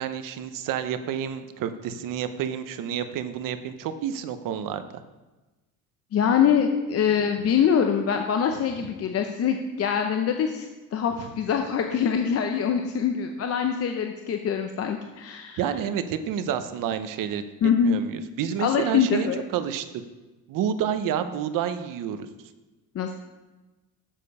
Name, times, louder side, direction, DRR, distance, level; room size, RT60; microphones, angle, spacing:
voice 1, 0.0-5.0 15.6-17.4 17.8-19.8 20.5-22.3, right 9 dB, 70° right, 10 dB, 0.7 m, -29 dB
voice 2, 6.1-10.6 10.9-15.6 17.6-18.0 18.6-19.4 22.9-23.1, left 7 dB, 45° left, 5 dB, 0.6 m, -24 dB
7.4 x 6.6 x 5.4 m, 1.2 s
cardioid pair, 135°, 33 cm